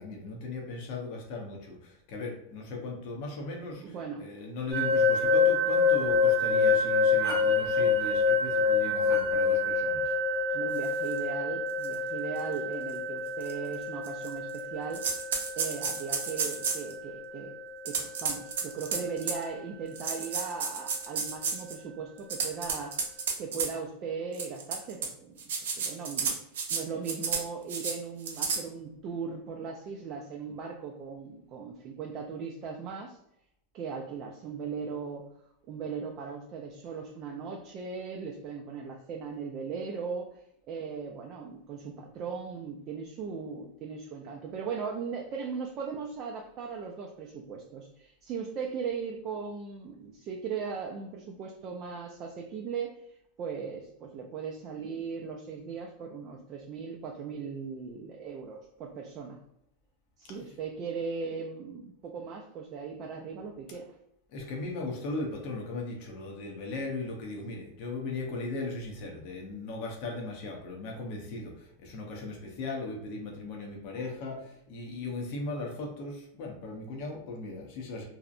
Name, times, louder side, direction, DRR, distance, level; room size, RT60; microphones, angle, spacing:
voice 1, 0.0-10.1 64.3-78.1, left 3 dB, 50° left, 0 dB, 0.6 m, -38 dB
voice 2, 3.8-4.2 6.8-6.9 10.5-15.0 15.6-17.5 17.8-22.9 23.4-25.4 25.8-26.4 26.7-33.2 33.7-35.3 35.7-40.4 40.7-59.4 60.2-64.0, right 5 dB, 35° right, 0 dB, 0.3 m, -38 dB
sound 1, 4.7-19.6, left 4 dB, 10° right, 1.0 m, -28 dB
sound 2, 11.1-11.2 11.8-11.9 12.4-12.5 13.4-13.5 14.0-14.6 14.9-16.9 17.8-19.4 19.9-21.7 22.2-23.7 24.3-25.1 25.4-26.8 27.0-27.4 27.7-27.9 28.2-28.6, right 5 dB, 85° right, 0.6 m, -31 dB
2.7 x 2.0 x 2.4 m, 0.77 s
supercardioid pair, 140°, 0 cm